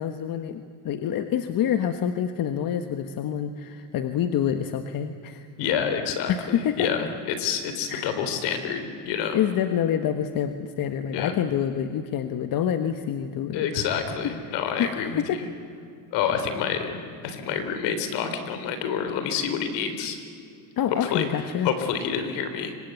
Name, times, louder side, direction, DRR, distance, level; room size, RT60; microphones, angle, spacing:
voice 1, 0.0-5.5 6.3-6.9 7.9-8.2 9.3-13.7 14.2-14.5 14.8-15.4 20.8-21.7, left 9 dB, 55° left, 8 dB, 1.5 m, -27 dB
voice 2, 5.6-7.1 7.4-9.4 11.1-11.3 13.5-15.5 16.1-20.2 21.0-21.3 21.6-22.7, left 7 dB, 75° left, 8 dB, 4.0 m, -28 dB
25.5 x 24.5 x 9.4 m, 2.4 s
cardioid pair, 120°, 41 cm